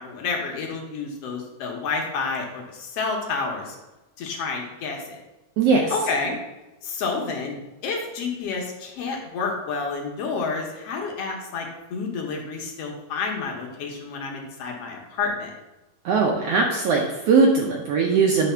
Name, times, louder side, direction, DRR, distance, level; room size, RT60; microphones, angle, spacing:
voice 1, 0.0-3.8 4.2-5.2 5.9-6.4 6.8-7.5 7.8-15.5, left 4 dB, 60° left, 1 dB, 1.8 m, -29 dB
voice 2, 5.6-5.9 16.0-18.5, right 4 dB, 75° right, 0 dB, 1.5 m, -20 dB
9.1 x 3.4 x 5.6 m, 1.0 s
omnidirectional pair, 3.6 m